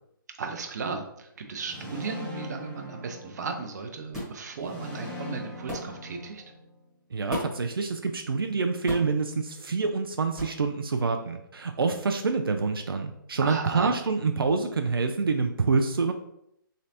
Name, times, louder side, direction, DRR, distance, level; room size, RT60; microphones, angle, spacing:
voice 1, 0.4-6.4 13.4-13.9, right 4 dB, 50° right, 5 dB, 0.6 m, -35 dB
sound 1, 1.6-3.8 4.6-6.8, left 1 dB, 10° left, 0.8 m, -40 dB
sound 2, 4.1-4.4 5.7-5.9 7.3-7.7 8.9-9.2 10.4-10.6, equal, 5° right, 1.4 m, -34 dB
voice 2, 7.1-16.1, right 4 dB, 90° right, 6 dB, 0.4 m, -27 dB
3.9 x 3.2 x 2.8 m, 0.78 s
hypercardioid pair, 150°, 12 cm